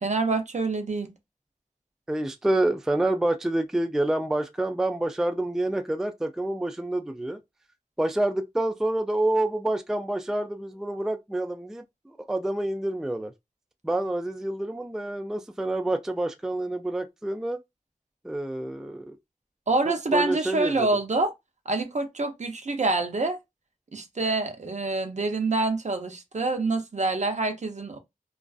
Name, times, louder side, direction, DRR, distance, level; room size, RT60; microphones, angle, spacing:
voice 1, 0.0-1.1 19.7-21.3 21.7-23.4 23.9-28.0, right 3 dB, 55° right, 0.6 m, -26 dB
voice 2, 2.1-7.4 8.0-13.3 13.8-17.6 18.2-19.2 19.9-20.9, right 1 dB, 5° right, 0.3 m, -28 dB
2.4 x 2.3 x 2.3 m
wide cardioid pair, 55°, 14 cm